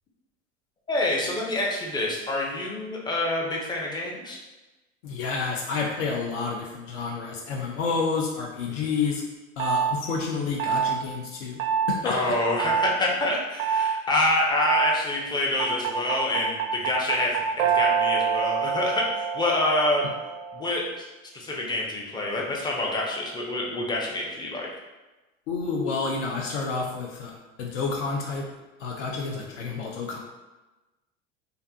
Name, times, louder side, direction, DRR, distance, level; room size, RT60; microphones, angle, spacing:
voice 1, 0.9-4.4 8.7-8.8 12.0-20.0 20.5-21.1 21.3-24.7, left 2 dB, 10° left, -3 dB, 0.4 m, -27 dB
voice 2, 5.0-9.2 9.6-11.6 11.9-12.3 25.5-28.5 28.8-30.2, left 4 dB, 65° left, -1 dB, 0.5 m, -29 dB
sound 1, 9.6-9.9 10.6-11.0 11.6-12.0 12.6-12.9 13.6-13.9 14.6-15.0 15.6-20.7, right 7 dB, 65° right, 0.5 m, -26 dB
2.5 x 2.4 x 2.2 m, 1.1 s
hypercardioid pair, 85°, 39 cm